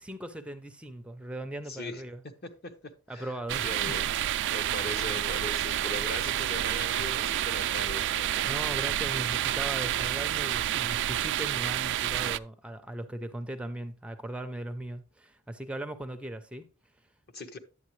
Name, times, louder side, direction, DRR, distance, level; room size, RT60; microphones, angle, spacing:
voice 1, 0.0-2.2 3.1-4.0 8.4-16.7, right 1 dB, 5° right, 0.5 m, -38 dB
voice 2, 1.7-2.0 2.4-3.3 3.6-4.0 4.5-8.5 17.3-17.6, left 2 dB, 50° left, 1.1 m, -39 dB
sound 1, 3.5-12.4, right 12 dB, 60° right, 0.3 m, -29 dB
10.5 x 8.0 x 3.1 m
head